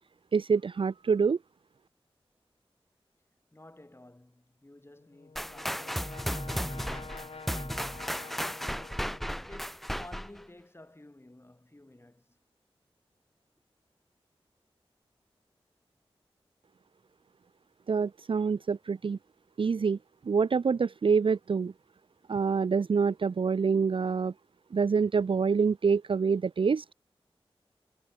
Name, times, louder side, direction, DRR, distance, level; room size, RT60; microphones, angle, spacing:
voice 1, 0.3-1.4 17.9-19.2 19.6-20.0 20.3-21.7 22.3-24.3 24.7-26.8, right 5 dB, 60° right, 0.5 m, -26 dB
voice 2, 3.5-9.0 9.5-12.4, left 1 dB, 25° left, 6.2 m, -53 dB
Brass instrument, 5.0-9.8, left 4 dB, 70° left, 7.2 m, -48 dB
sound 1, 5.4-10.4, equal, ahead, 1.2 m, -34 dB
cardioid pair, 50°, 10 cm